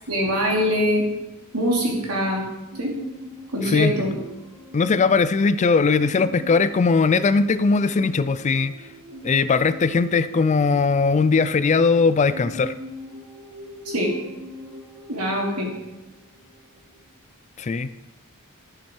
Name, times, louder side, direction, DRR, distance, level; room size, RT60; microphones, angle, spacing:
voice 1, 0.1-1.0 1.5-2.4 2.8-2.9 3.5-4.1 13.9-14.1 15.1-15.7, equal, 85° right, -1 dB, 2.9 m, -23 dB
sound 1, 2.7-17.1, equal, 70° right, 3.3 m, -42 dB
voice 2, 3.6-4.1 4.7-8.7 9.2-12.7 17.6-17.9, left 4 dB, 30° left, 14 dB, 0.4 m, -19 dB
11.5 x 7.5 x 4.6 m, 1.0 s
head